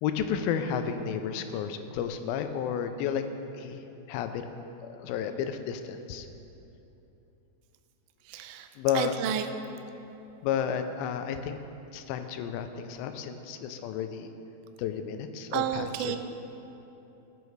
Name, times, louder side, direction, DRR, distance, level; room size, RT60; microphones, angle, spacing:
voice 1, 0.0-3.3 3.6-4.5 4.8-6.3 8.8-9.1 10.4-11.6 11.9-14.3 14.8-16.2, left 8 dB, 90° left, 8 dB, 2.4 m, -32 dB
voice 2, 8.2-8.7 8.9-9.5 15.5-16.2, right 9 dB, 90° right, 7 dB, 1.7 m, -30 dB
15.0 x 8.2 x 3.2 m, 2.9 s
omnidirectional pair, 4.2 m